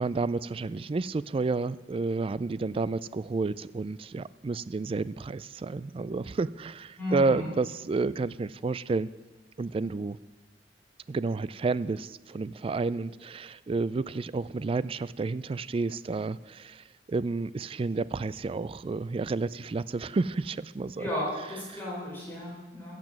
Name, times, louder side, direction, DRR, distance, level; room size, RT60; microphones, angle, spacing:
voice 1, 0.0-9.1 9.6-10.2 11.1-21.1 21.7-21.8, right 3 dB, 30° right, 18 dB, 0.3 m, -30 dB
voice 2, 7.0-7.5 21.0-23.0, left 1 dB, 10° left, -6 dB, 4.2 m, -34 dB
15.0 x 7.5 x 7.5 m, 1.2 s
head